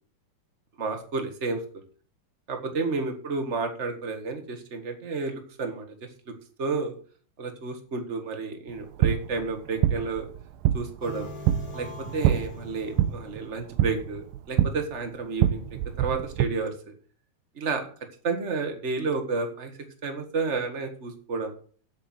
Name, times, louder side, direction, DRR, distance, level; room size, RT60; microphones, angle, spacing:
voice 1, 0.8-1.6 2.5-5.8 6.6-6.9 7.4-10.3 10.7-11.3 11.7-15.6 16.0-16.9 17.6-17.9 18.2-19.7 20.0-21.5, right 4 dB, 50° right, 5 dB, 0.8 m, -31 dB
sound 1, 8.7-16.5, right 11 dB, 80° right, 2.4 m, -26 dB
sound 2, 11.0-14.2, left 1 dB, 10° left, 2.3 m, -42 dB
8.3 x 7.8 x 7.8 m, 0.44 s
omnidirectional pair, 4.2 m